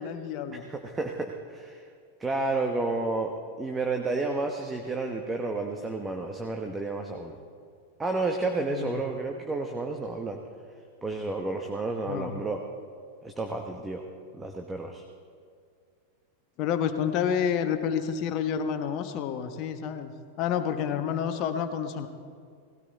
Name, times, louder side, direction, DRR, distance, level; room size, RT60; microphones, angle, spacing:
voice 1, 0.0-0.6 8.7-9.0 12.1-12.4 16.6-20.1 20.4-22.1, left 8 dB, 40° left, 7 dB, 1.3 m, -29 dB
voice 2, 0.5-1.8 2.2-7.4 8.0-10.4 11.0-12.6 13.2-14.0 14.3-15.0, right 3 dB, 15° right, 3 dB, 1.2 m, -31 dB
18.5 x 16.5 x 4.1 m, 2.2 s
figure-of-eight pair, 90°, 0 cm